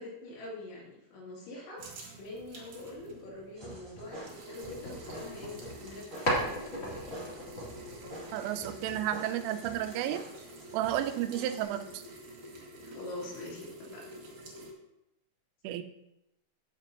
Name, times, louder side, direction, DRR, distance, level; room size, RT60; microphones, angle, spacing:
voice 1, 0.0-1.9 2.2-6.9 12.8-14.0, left 2 dB, 85° left, -5 dB, 5.4 m, -44 dB
sound 1, 1.8-14.7, right 1 dB, 55° right, 2.2 m, -48 dB
sound 2, 3.6-11.6, right 1 dB, 35° right, 1.2 m, -47 dB
sound 3, 4.6-6.0 6.2-8.9, equal, 30° left, 1.1 m, -36 dB
voice 2, 8.3-10.2 10.7-12.0 15.6-15.8, right 12 dB, 85° right, 10 dB, 3.1 m, -32 dB
16.5 x 6.0 x 2.9 m, 0.86 s
omnidirectional pair, 5.9 m